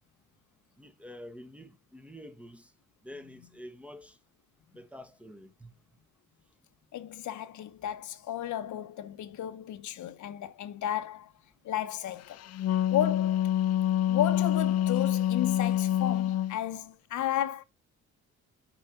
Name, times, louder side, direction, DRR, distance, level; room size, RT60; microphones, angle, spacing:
voice 1, 0.8-2.7 3.0-4.2 4.7-5.7, left 1 dB, 5° right, 1.3 m, -47 dB
voice 2, 6.9-11.3 11.6-12.4 12.9-13.5 14.1-17.6, left 11 dB, 75° left, 1.0 m, -33 dB
Wind instrument woodwind instrument, 12.4-16.6, left 11 dB, 55° left, 0.5 m, -26 dB
7.1 x 5.1 x 5.7 m
cardioid pair, 90°, 30 cm